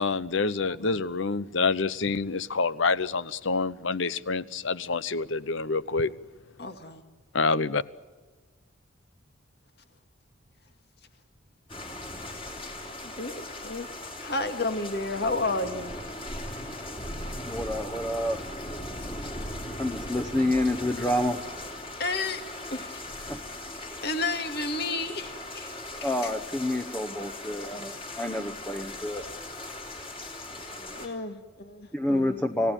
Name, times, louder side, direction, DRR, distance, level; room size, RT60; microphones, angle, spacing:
voice 1, 0.0-6.1 7.3-7.8, left 4 dB, 75° left, 0.9 m, -27 dB
voice 2, 0.7-1.0 6.6-7.0 13.0-13.9 14.2-15.9 17.9-18.0 22.0-22.4 22.7-23.3 24.0-25.7 26.0-26.3 30.9-32.4, left 3 dB, 55° left, 2.1 m, -32 dB
sound 1, 11.7-31.1, left 1 dB, 25° left, 3.6 m, -39 dB
voice 3, 17.5-18.4 19.8-21.4 23.3-23.4 26.0-29.3 31.9-32.7, left 1 dB, 10° left, 1.0 m, -28 dB
29.0 x 17.0 x 9.1 m
head